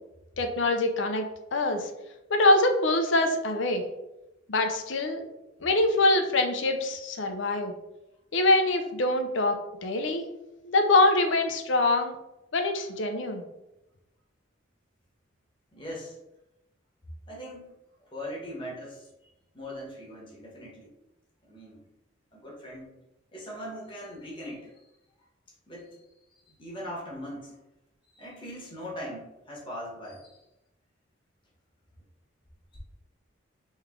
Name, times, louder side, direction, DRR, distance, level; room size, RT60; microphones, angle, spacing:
voice 1, 0.4-1.2 1.5-1.9 2.3-3.8 4.5-5.3 5.6-7.7 8.3-10.3 10.6-12.2 12.5-13.4, left 2 dB, 70° left, 5 dB, 0.6 m, -24 dB
voice 2, 15.7-16.2 17.3-17.7 18.0-19.1 19.5-20.9 21.4-21.8 22.3-22.9 23.3-24.8 25.7-26.1 26.3-27.6 28.1-30.4, equal, 25° left, -4 dB, 1.2 m, -40 dB
3.3 x 3.1 x 3.6 m, 0.93 s
head